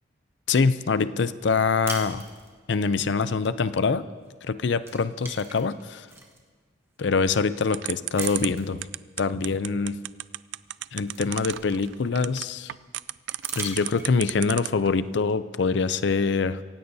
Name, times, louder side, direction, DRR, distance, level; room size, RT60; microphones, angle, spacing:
voice 1, 0.5-2.2 2.7-4.0 4.5-6.1 7.0-8.8 9.2-10.0 10.9-12.7 13.6-16.6, left 4 dB, 65° left, 14 dB, 0.5 m, -24 dB
sound 1, 1.9-2.9 4.3-4.5 4.8-6.4 7.0-7.1 8.2-8.8 10.2-10.3 10.7-12.2 13.3-14.4, right 3 dB, 15° right, 1.3 m, -40 dB
sound 2, 7.7-14.9, right 16 dB, 70° right, 0.3 m, -32 dB
26.0 x 16.0 x 2.7 m, 1.5 s
head